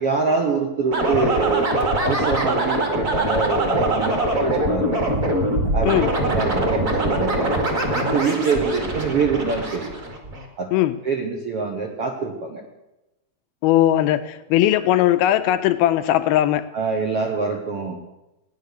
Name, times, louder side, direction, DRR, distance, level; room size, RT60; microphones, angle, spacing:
voice 1, 0.0-1.7 2.0-5.1 5.7-5.9 6.2-7.6 7.9-9.9 10.6-10.7 11.0-12.6 16.7-18.0, right 4 dB, 60° right, 1 dB, 1.5 m, -25 dB
sound 1, 0.9-10.4, right 1 dB, 30° right, 1.8 m, -22 dB
voice 2, 13.6-16.7, left 13 dB, 80° left, 10 dB, 2.4 m, -19 dB
16.5 x 10.5 x 6.6 m, 0.97 s
omnidirectional pair, 4.5 m